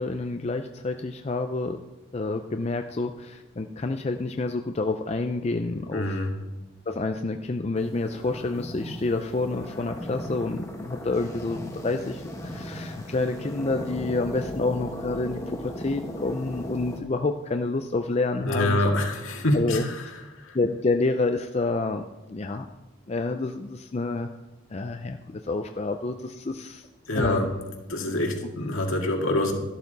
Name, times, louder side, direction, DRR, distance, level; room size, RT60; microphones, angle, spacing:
voice 1, 0.0-1.8 2.1-6.2 6.9-18.9 19.5-19.8 20.5-22.7 23.1-24.3 24.7-26.9 27.1-27.5 28.0-28.1, left 3 dB, 30° left, 6 dB, 0.4 m, -28 dB
voice 2, 5.9-6.3 18.4-20.0 20.4-20.6 27.1-27.5 27.9-29.5, left 1 dB, 70° left, 2 dB, 2.0 m, -26 dB
sound 1, 7.8-17.0, equal, 15° left, 1.4 m, -37 dB
13.0 x 12.0 x 4.0 m, 1.1 s
head